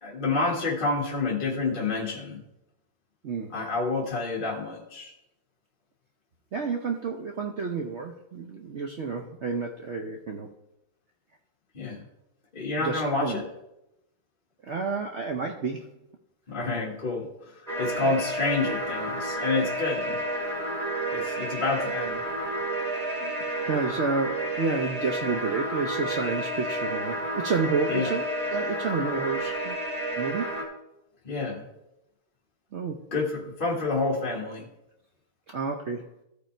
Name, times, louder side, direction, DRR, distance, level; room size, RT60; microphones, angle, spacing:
voice 1, 0.0-2.4 3.5-5.1 11.7-12.0 12.5-13.5 16.5-17.5 17.8-20.2 21.1-22.2 27.9-28.1 31.2-31.7 33.1-34.7, left 3 dB, 30° left, -2 dB, 1.4 m, -28 dB
voice 2, 3.2-3.6 6.5-10.5 12.8-13.4 14.6-15.9 20.1-20.2 23.2-29.8 30.2-30.6 32.7-33.1 35.5-36.1, right 4 dB, 80° right, 3 dB, 0.6 m, -30 dB
sound 1, 17.7-30.6, right 1 dB, 20° right, 2.3 m, -31 dB
14.5 x 5.2 x 4.4 m, 0.89 s
omnidirectional pair, 2.1 m